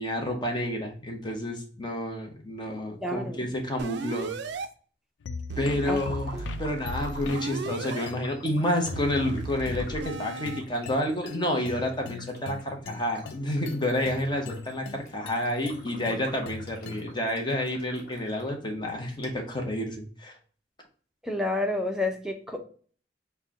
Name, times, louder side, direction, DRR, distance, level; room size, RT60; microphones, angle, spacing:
voice 1, 0.0-4.3 5.6-20.3, left 1 dB, 25° left, 2 dB, 0.8 m, -29 dB
voice 2, 3.0-3.4 5.9-6.0 21.2-22.6, left 2 dB, 5° right, 3 dB, 0.6 m, -29 dB
sound 1, 3.8-4.7 5.5-8.1 8.9-10.6, right 4 dB, 70° right, 0.4 m, -36 dB
sound 2, 5.2-17.2, left 5 dB, 85° left, 0.4 m, -41 dB
sound 3, 5.7-18.5 18.9-19.0 19.2-19.3, equal, 60° left, 1.1 m, -48 dB
4.3 x 2.2 x 3.5 m, 0.43 s
head